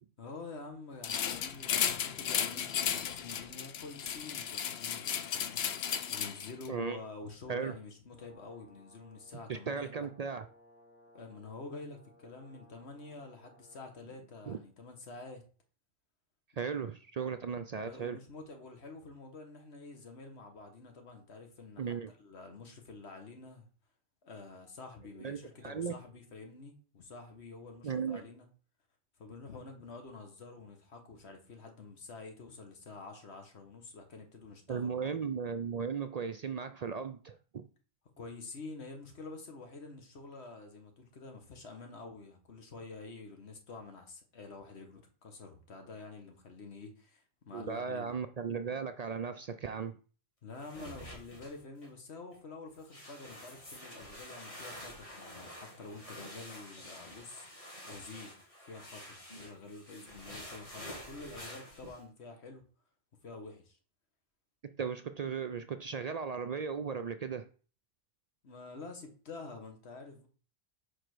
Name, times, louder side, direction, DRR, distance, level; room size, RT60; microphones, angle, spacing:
voice 1, 0.2-5.6 6.1-10.1 11.1-15.4 17.8-23.7 24.2-28.5 29.2-35.1 38.2-48.2 50.4-57.5 57.8-62.6 63.2-63.8 68.4-70.3, left 3 dB, 90° left, 1.7 m, -48 dB
sound 1, 1.0-6.7, left 8 dB, 75° left, 0.9 m, -34 dB
voice 2, 6.7-7.0 7.5-7.7 9.5-10.4 14.5-14.6 16.6-18.2 21.8-22.1 25.2-25.9 27.8-28.2 34.7-37.7 47.5-49.9 64.8-67.5, right 6 dB, 55° right, 0.4 m, -36 dB
Brass instrument, 8.1-14.0, left 1 dB, 50° left, 3.0 m, -62 dB
sound 2, 50.6-51.9 52.3-52.4 52.8-62.0, left 1 dB, 30° left, 2.3 m, -48 dB
5.1 x 4.6 x 6.0 m
omnidirectional pair, 1.1 m